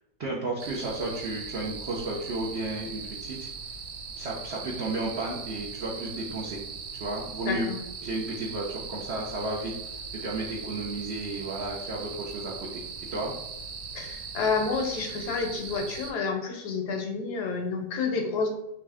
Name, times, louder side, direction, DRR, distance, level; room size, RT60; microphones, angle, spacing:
voice 1, 0.2-3.5 4.2-6.6 6.9-7.7 8.0-9.7 10.2-12.8 13.1-13.3, right 2 dB, 55° right, -3 dB, 0.8 m, -33 dB
sound 1, 0.6-16.1, right 5 dB, 85° right, 1.4 m, -39 dB
voice 2, 7.4-7.8 13.9-18.5, left 4 dB, 70° left, 3 dB, 1.3 m, -29 dB
3.5 x 3.1 x 4.8 m, 0.89 s
omnidirectional pair, 1.9 m